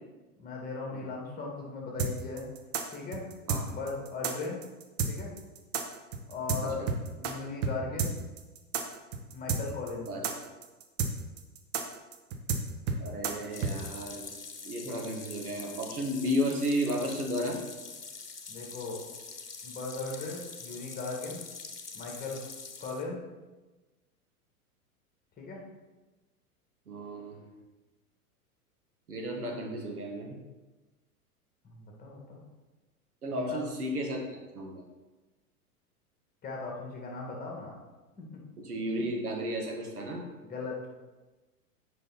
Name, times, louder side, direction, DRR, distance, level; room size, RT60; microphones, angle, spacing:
voice 1, 0.4-2.5 2.9-3.3 3.7-4.6 5.1-5.3 6.3-6.9 7.2-8.2 9.3-10.1 18.5-19.0 19.6-21.5 21.9-22.4 22.8-23.2 25.4-25.6 31.6-32.4 33.3-33.7 36.4-37.8 38.2-38.4 40.4-40.8, left 3 dB, 20° left, -1 dB, 1.8 m, -38 dB
sound 1, 2.0-7.3 7.6-7.7 8.0-13.7, right 5 dB, 35° right, 0.8 m, -31 dB
voice 2, 13.0-14.3 14.6-17.6 26.9-27.4 29.1-30.4 33.2-34.2 34.5-34.8 38.6-40.3, equal, 75° right, 0 dB, 1.7 m, -33 dB
sound 2, 13.5-23.0, left 4 dB, 90° left, 0.8 m, -44 dB
7.7 x 5.3 x 4.1 m, 1.2 s
figure-of-eight pair, 95°, 45 cm